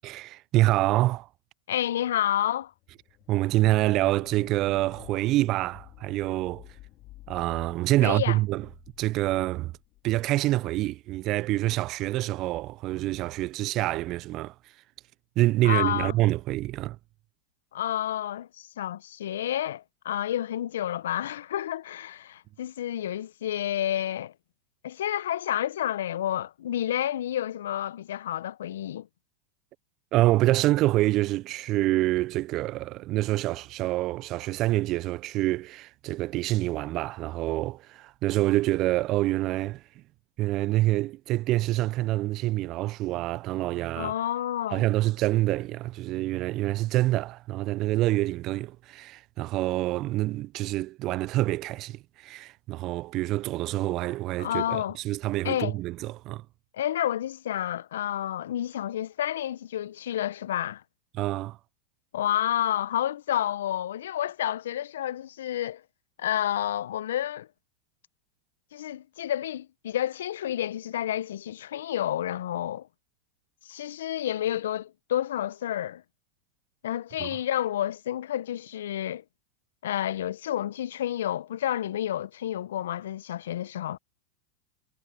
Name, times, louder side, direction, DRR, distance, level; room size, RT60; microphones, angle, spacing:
voice 1, 0.0-1.3 3.3-6.7 7.3-8.7 9.0-9.7 10.0-14.7 15.4-17.0 30.1-40.0 40.4-44.1 44.7-56.5 61.1-61.6 77.2-77.4, right 17 dB, 45° right, 0.4 m, -26 dB
voice 2, 1.7-2.7 8.0-8.4 15.6-16.1 17.7-24.3 24.8-29.1 44.0-44.8 54.4-55.0 55.4-55.8 56.7-60.8 62.1-65.8 66.2-67.5 68.7-72.9 73.6-76.0 76.8-79.2 79.8-84.0, left 11 dB, 70° left, 1.0 m, -30 dB
sound 1, 2.6-11.0, left 18 dB, 45° left, 2.4 m, -51 dB
hypercardioid pair, 95°, 0 cm